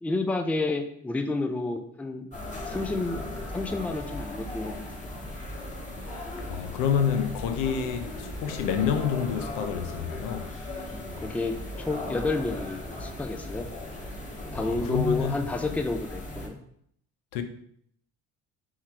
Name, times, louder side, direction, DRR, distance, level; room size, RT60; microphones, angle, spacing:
voice 1, 0.0-2.3 2.7-3.2 3.5-4.8 11.2-13.7 14.5-16.6, left 3 dB, 5° left, 0.4 m, -30 dB
sound 1, 2.3-16.5, left 1 dB, 20° left, 1.3 m, -37 dB
voice 2, 6.5-10.5 14.5-15.3 17.3-17.4, left 7 dB, 80° left, 0.6 m, -28 dB
3.7 x 3.1 x 4.3 m
supercardioid pair, 80°, 33 cm